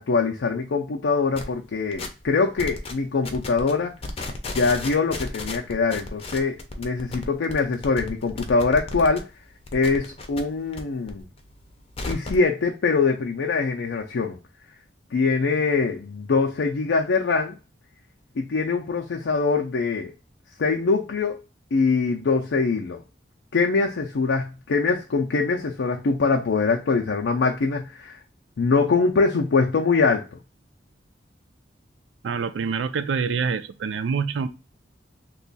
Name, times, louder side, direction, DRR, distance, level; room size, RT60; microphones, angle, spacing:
voice 1, 0.0-3.9 4.5-9.2 9.7-11.3 12.1-14.4 15.1-17.6 18.4-20.1 20.6-21.4 21.7-23.0 23.5-28.2 28.6-30.3, left 4 dB, 85° left, 0.5 m, -23 dB
sound 1, 1.3-1.5 1.9-2.3 2.6-2.9 3.2-3.7 4.0-9.2 9.5-10.8 11.1-12.4, left 2 dB, 35° left, 0.5 m, -34 dB
voice 2, 32.2-34.5, right 5 dB, 85° right, 0.4 m, -26 dB
3.0 x 2.3 x 3.9 m
head